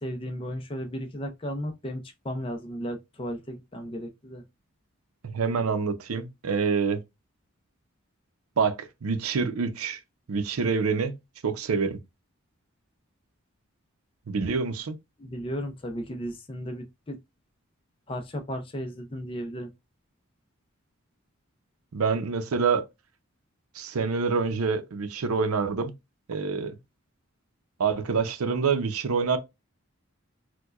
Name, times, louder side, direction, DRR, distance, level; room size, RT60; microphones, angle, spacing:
voice 1, 0.0-4.4 15.2-17.2 18.1-19.7, equal, 25° left, 0.5 m, -35 dB
voice 2, 5.2-7.0 8.6-10.0 10.3-11.1 11.4-12.0 14.3-15.0 21.9-22.9 23.7-25.9 26.3-26.8 27.8-29.4, right 5 dB, 85° right, 0.6 m, -26 dB
4.5 x 2.2 x 2.4 m
head